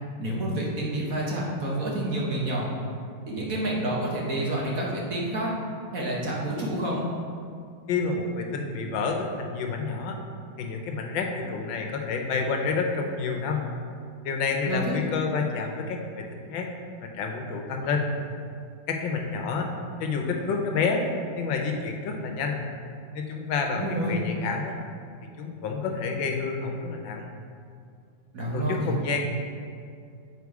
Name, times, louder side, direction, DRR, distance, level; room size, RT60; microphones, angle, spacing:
voice 1, 0.2-2.7 3.3-5.5 5.9-7.1 14.7-15.0 23.7-24.2 28.3-28.9, right 1 dB, 50° right, -4 dB, 1.5 m, -28 dB
voice 2, 7.9-10.2 10.6-13.7 14.2-16.7 17.0-18.1 18.9-19.7 20.0-21.0 21.4-22.6 23.1-24.8 25.4-27.3 28.5-29.4, left 4 dB, 90° left, 2 dB, 1.5 m, -29 dB
8.2 x 4.5 x 4.7 m, 2.3 s
omnidirectional pair, 2.0 m